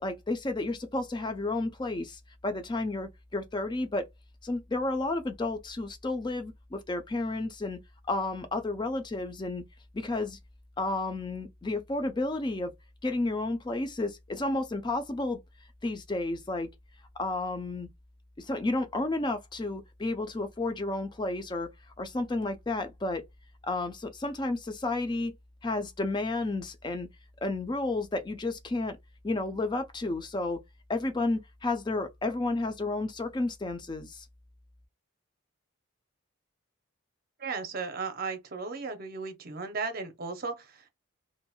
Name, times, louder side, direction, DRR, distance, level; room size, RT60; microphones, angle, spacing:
voice 1, 0.0-4.1 4.4-7.8 8.1-9.6 9.9-10.4 10.8-12.7 13.0-15.4 15.8-16.7 17.2-17.9 18.4-21.7 22.0-23.2 23.6-25.3 25.6-27.1 27.4-29.0 29.2-30.6 30.9-34.3, left 2 dB, 20° left, 0.4 m, -31 dB
voice 2, 37.4-40.9, right 4 dB, 45° right, 0.6 m, -35 dB
2.9 x 2.6 x 2.3 m
head